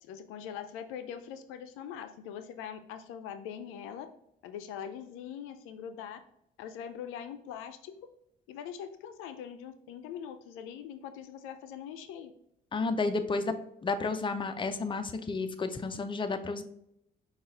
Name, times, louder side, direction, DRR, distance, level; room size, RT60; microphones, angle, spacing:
voice 1, 0.0-4.1 4.4-6.2 6.6-7.9 8.5-12.3, left 8 dB, 90° left, 9 dB, 0.4 m, -42 dB
voice 2, 12.7-13.5 13.8-16.6, left 3 dB, 25° left, 9 dB, 0.5 m, -31 dB
5.4 x 2.4 x 3.3 m, 0.76 s
supercardioid pair, 65°, 21 cm